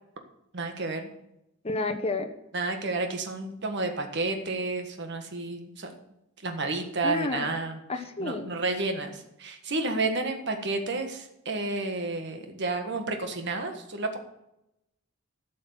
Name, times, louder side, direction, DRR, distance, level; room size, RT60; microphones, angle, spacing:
voice 1, 0.5-1.1 2.5-5.9 6.4-7.8 8.2-14.2, right 3 dB, 60° right, 5 dB, 1.5 m, -31 dB
voice 2, 1.6-2.3 7.0-7.5 7.9-8.5, left 3 dB, 30° left, 6 dB, 1.1 m, -30 dB
12.0 x 6.3 x 7.6 m, 0.85 s
head